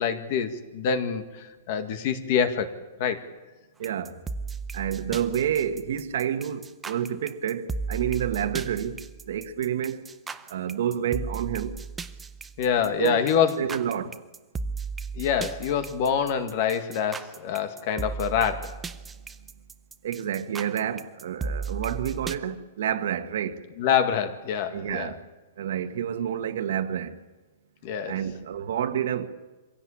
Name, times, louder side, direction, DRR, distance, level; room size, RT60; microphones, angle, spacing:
voice 1, 0.0-2.7 3.0-3.3 12.6-13.7 15.2-18.7 23.8-25.2 27.8-28.2, left 7 dB, 40° left, 1.9 m, -26 dB
sound 1, 3.8-22.4, right 4 dB, 10° right, 0.7 m, -36 dB
voice 2, 3.8-4.2 4.7-9.0 9.3-10.1 10.5-11.8 12.8-13.2 13.6-14.2 20.0-23.6 24.7-25.2 25.6-27.2 28.1-29.3, right 9 dB, 65° right, 1.7 m, -29 dB
24.5 x 16.5 x 8.6 m
hypercardioid pair, 165°, 0 cm